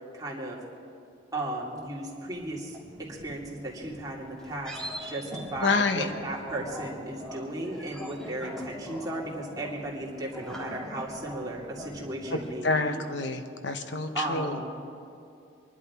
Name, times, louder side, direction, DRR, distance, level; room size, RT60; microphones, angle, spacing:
voice 1, 0.1-0.6 1.3-13.0 14.1-14.8, right 1 dB, 20° right, -4 dB, 2.4 m, -35 dB
sound 1, 1.8-12.5, equal, 5° left, 1.8 m, -43 dB
voice 2, 5.6-6.1 12.6-14.5, left 3 dB, 75° left, 7 dB, 1.1 m, -27 dB
24.0 x 11.0 x 4.8 m, 2.6 s
head